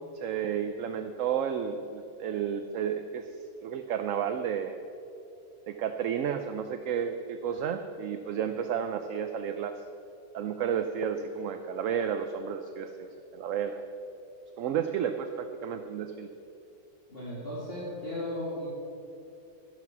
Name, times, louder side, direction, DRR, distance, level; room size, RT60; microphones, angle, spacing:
voice 1, 0.1-3.3 3.6-4.8 5.7-9.8 10.3-13.9 14.6-16.3, right 8 dB, 65° right, 8 dB, 1.0 m, -32 dB
voice 2, 17.1-18.7, left 1 dB, 40° left, -8 dB, 3.0 m, -35 dB
12.5 x 11.5 x 6.1 m, 2.7 s
omnidirectional pair, 1.6 m